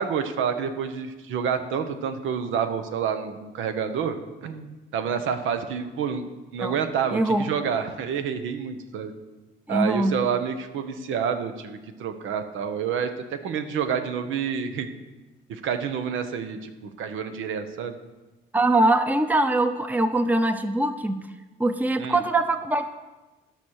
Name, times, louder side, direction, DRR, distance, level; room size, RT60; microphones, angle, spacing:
voice 1, 0.0-4.2 4.4-9.1 9.7-14.9 15.5-18.0 22.0-22.2, right 7 dB, 85° right, 9 dB, 1.0 m, -28 dB
voice 2, 7.1-7.5 9.7-10.2 18.5-21.3 21.6-22.9, right 2 dB, 10° right, 9 dB, 0.7 m, -22 dB
11.5 x 6.1 x 6.4 m, 1.2 s
cardioid pair, 90°, 20 cm